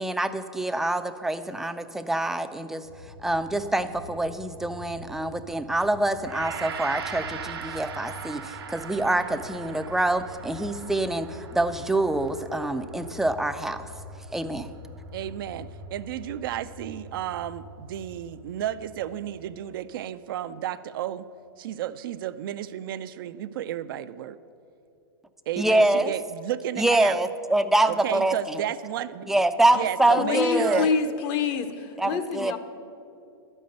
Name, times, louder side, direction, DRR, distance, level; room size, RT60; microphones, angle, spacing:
voice 1, 0.0-2.9 3.2-13.9 14.3-14.7 25.6-26.1 26.8-28.4 29.3-30.9 32.0-32.6, right 1 dB, 5° right, 9 dB, 0.4 m, -25 dB
sound 1, 2.8-19.7, left 2 dB, 70° left, 1.2 m, -45 dB
Gong, 6.3-15.5, right 7 dB, 80° right, 1.0 m, -40 dB
voice 2, 15.1-21.2 21.6-24.4 25.5-27.2 27.9-29.3 29.7-30.9, right 11 dB, 65° right, 12 dB, 0.4 m, -32 dB
voice 3, 30.2-32.6, left 5 dB, 45° left, 9 dB, 0.8 m, -26 dB
12.0 x 5.4 x 7.7 m, 2.6 s
hypercardioid pair, 120°, 12 cm